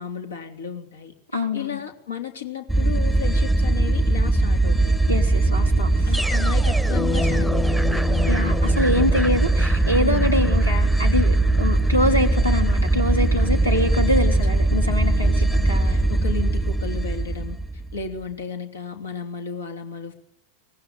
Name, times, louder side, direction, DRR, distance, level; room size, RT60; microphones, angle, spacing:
voice 1, 0.0-4.9 6.1-8.7 10.0-10.4 13.4-14.0 14.6-14.8 15.0-17.6 17.9-20.1, left 7 dB, 70° left, 5 dB, 3.5 m, -34 dB
voice 2, 1.3-1.8 5.1-6.2 8.3-16.1, left 1 dB, 85° left, 5 dB, 3.4 m, -25 dB
sound 1, 2.7-18.1, right 2 dB, 5° left, 1.1 m, -20 dB
Bass guitar, 7.0-11.4, left 5 dB, 25° left, 1.5 m, -32 dB
24.5 x 21.0 x 9.9 m, 0.68 s
figure-of-eight pair, 90°, 0 cm